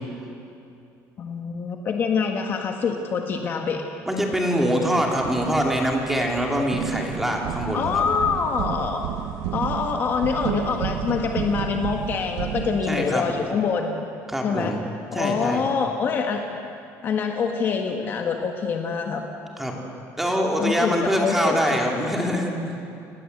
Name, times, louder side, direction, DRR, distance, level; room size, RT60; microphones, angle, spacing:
voice 1, 1.2-3.8 7.7-9.0 9.5-14.1 14.4-14.7 15.1-16.4 17.0-19.2 20.6-21.8, left 5 dB, 35° left, 3 dB, 1.5 m, -25 dB
voice 2, 4.1-8.1 12.8-13.3 14.3-14.8 15.1-15.6 19.6-19.7 20.2-22.8, equal, 5° right, 0 dB, 2.9 m, -24 dB
sound 1, 4.9-11.6, right 1 dB, 20° right, 4.9 m, -45 dB
sound 2, 5.2-6.3 6.7-13.5, right 11 dB, 80° right, 1.2 m, -31 dB
29.5 x 19.0 x 8.1 m, 2.6 s
cardioid pair, 170°, 6 cm